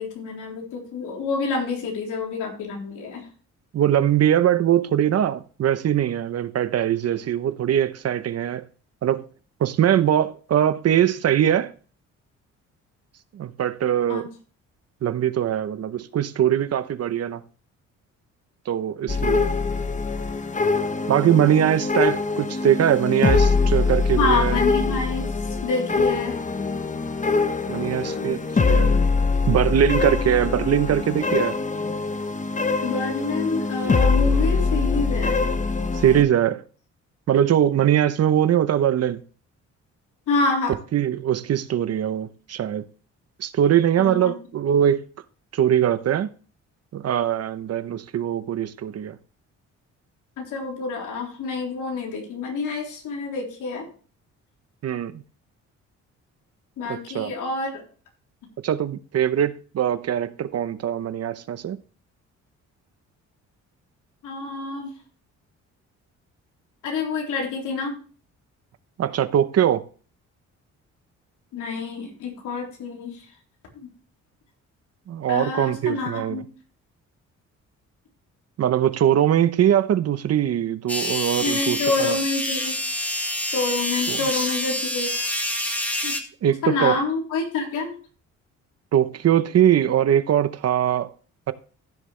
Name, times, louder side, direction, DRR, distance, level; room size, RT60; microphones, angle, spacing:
voice 1, 0.0-3.3 14.1-14.3 24.2-25.3 25.6-26.4 27.7-28.4 32.8-35.4 40.3-40.8 44.0-44.3 50.4-53.9 56.8-57.8 64.2-64.9 66.8-67.9 71.5-73.2 73.7-73.9 75.3-76.5 81.4-82.7 83.5-85.3 86.0-86.2 86.6-87.9, left 4 dB, 80° left, 3.7 m, -27 dB
voice 2, 3.7-8.6 9.0-9.2 9.6-11.7 13.3-14.3 15.0-17.4 18.7-19.5 21.1-24.6 27.7-29.0 29.5-31.6 35.9-36.6 37.3-39.2 40.9-42.8 43.4-45.1 45.5-46.3 46.9-49.2 54.8-55.2 56.9-57.3 58.6-61.8 69.0-69.8 75.1-76.4 78.6-82.2 84.1-84.2 86.4-87.0 88.9-91.1 91.5-91.6, right 10 dB, 55° right, 0.8 m, -21 dB
sound 1, 19.1-36.2, left 4 dB, 25° left, 0.9 m, -23 dB
sound 2, 80.9-86.2, left 1 dB, 5° left, 1.9 m, -27 dB
15.0 x 6.7 x 3.3 m
cardioid pair, 90°, 30 cm